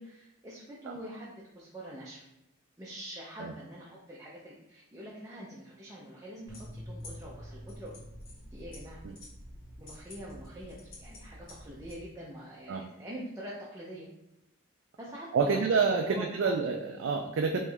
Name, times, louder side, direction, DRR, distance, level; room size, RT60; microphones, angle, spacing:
voice 1, 0.0-2.2 2.8-7.9 8.5-9.0 9.8-14.1 15.0-16.6, equal, 15° right, -5 dB, 0.6 m, -45 dB
sound 1, 6.5-12.0, equal, 75° left, 1.4 m, -47 dB
voice 2, 15.3-17.6, right 5 dB, 70° right, 3 dB, 0.3 m, -28 dB
3.4 x 3.1 x 3.4 m, 0.89 s
head